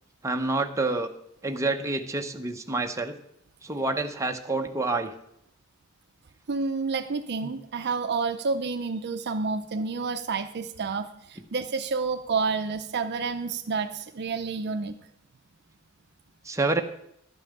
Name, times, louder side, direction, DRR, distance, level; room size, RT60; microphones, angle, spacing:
voice 1, 0.2-1.1 1.4-3.2 3.6-5.1 7.4-7.5 16.4-16.8, right 2 dB, 15° right, 4 dB, 0.8 m, -28 dB
voice 2, 6.5-14.9, right 4 dB, 55° right, 8 dB, 0.6 m, -29 dB
11.5 x 5.6 x 8.0 m, 0.75 s
head